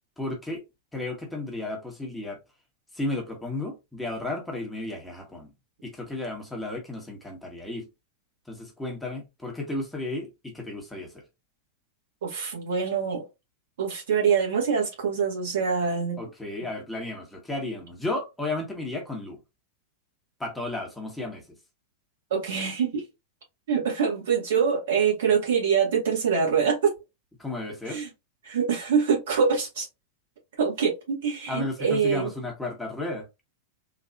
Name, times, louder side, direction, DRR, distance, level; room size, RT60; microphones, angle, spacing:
voice 1, 0.2-0.6 0.9-2.4 2.9-5.5 5.8-7.9 8.5-11.2 16.2-19.4 20.4-21.4 27.4-28.0 31.5-33.3, left 2 dB, 5° left, 1.2 m, -33 dB
voice 2, 12.2-13.2 13.8-16.2 22.3-23.0 23.7-26.9 27.9-28.1 28.4-29.9 30.6-32.3, right 6 dB, 60° right, 1.9 m, -24 dB
3.9 x 2.9 x 2.5 m
figure-of-eight pair, 90°, 0 cm